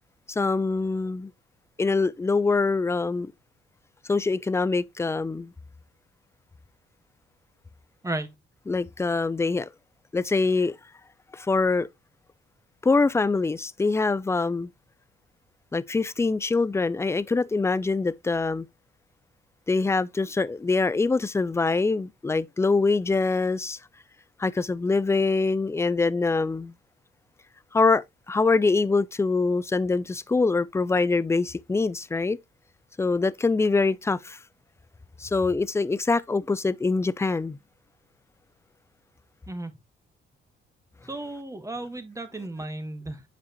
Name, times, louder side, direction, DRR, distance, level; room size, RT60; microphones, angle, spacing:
voice 1, 0.3-1.3 1.8-3.3 4.1-5.5 8.7-9.7 10.1-10.8 11.3-11.9 12.8-14.7 15.7-18.7 19.7-23.8 24.4-26.7 27.7-32.4 33.0-34.4 35.2-37.6, left 3 dB, 15° left, 0.4 m, -24 dB
voice 2, 39.5-39.8 41.0-43.2, right 2 dB, 15° right, 1.4 m, -34 dB
8.3 x 5.1 x 2.9 m
cardioid pair, 90°, 20 cm